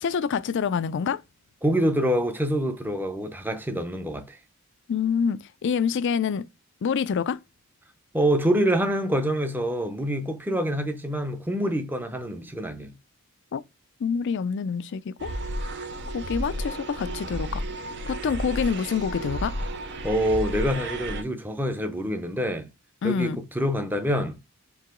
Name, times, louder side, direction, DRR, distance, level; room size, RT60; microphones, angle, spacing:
voice 1, 0.0-1.2 4.9-6.5 6.8-7.4 13.5-13.6 14.0-15.3 16.1-17.6 18.1-19.5 23.0-23.4, left 6 dB, 55° left, 0.4 m, -26 dB
voice 2, 1.6-4.4 8.1-12.9 20.0-22.7 23.0-24.4, equal, 10° right, 0.6 m, -26 dB
sound 1, 15.2-21.2, right 1 dB, 50° right, 0.6 m, -32 dB
4.7 x 2.9 x 3.7 m
head